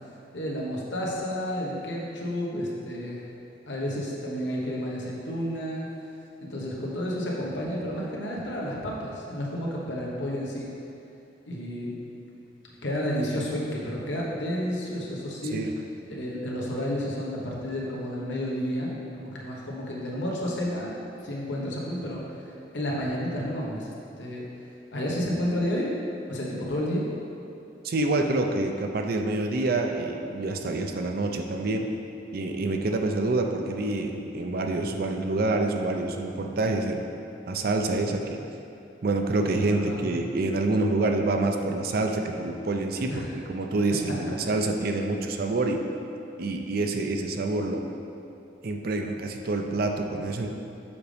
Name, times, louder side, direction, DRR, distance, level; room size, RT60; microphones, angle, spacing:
voice 1, 0.3-3.3 3.7-5.9 6.4-10.7 11.5-12.0 12.8-15.6 16.1-20.9 21.2-23.9 24.2-24.4 24.9-25.9 26.3-27.1 39.7-40.2 43.1-43.3, equal, 80° left, -4 dB, 1.2 m, -31 dB
voice 2, 27.8-31.9 32.3-37.0 37.5-38.4 39.0-45.8 46.4-47.9 48.6-50.5, right 2 dB, 55° right, 4 dB, 0.5 m, -27 dB
7.0 x 5.1 x 3.4 m, 2.7 s
head